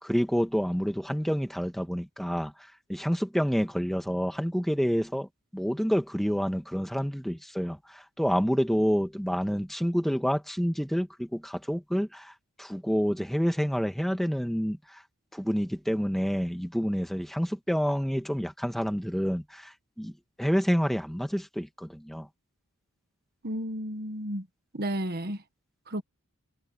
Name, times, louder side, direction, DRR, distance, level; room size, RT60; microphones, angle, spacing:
voice 1, 0.0-2.5 2.9-5.3 5.5-12.3 12.6-14.8 15.3-19.7 20.0-20.1 20.4-22.3, equal, ahead, 2.0 m, -28 dB
voice 2, 23.4-24.4 24.7-25.4 25.9-26.0, equal, 45° right, 1.4 m, -32 dB
head